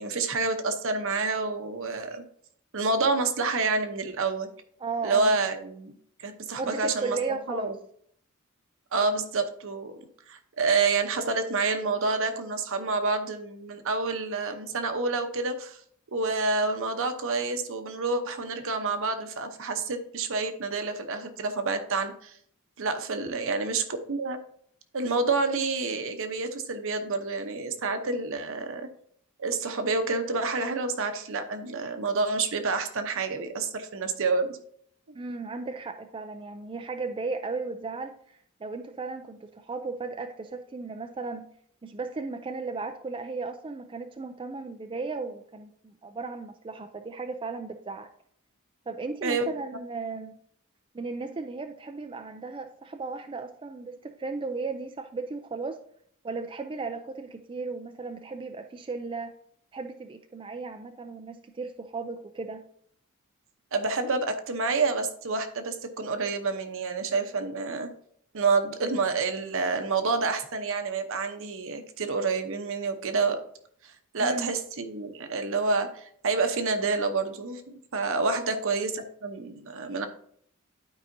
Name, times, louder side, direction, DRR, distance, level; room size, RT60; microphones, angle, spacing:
voice 1, 0.0-2.2 2.7-4.5 5.0-5.9 6.2-7.7 8.9-10.0 10.3-15.8 16.1-22.3 22.8-24.4 24.9-28.9 29.4-34.6 49.2-49.4 63.7-67.9 68.3-73.4 73.8-77.6 77.9-80.1, right 3 dB, 65° right, 7 dB, 0.9 m, -28 dB
voice 2, 4.8-5.4 6.6-7.8 23.3-23.5 35.1-38.2 38.6-41.5 41.8-48.1 48.9-50.4 50.9-55.8 56.2-59.3 59.7-62.7 74.2-74.5 78.4-78.6, right 4 dB, 25° right, 6 dB, 0.4 m, -35 dB
12.0 x 4.8 x 2.7 m, 0.64 s
head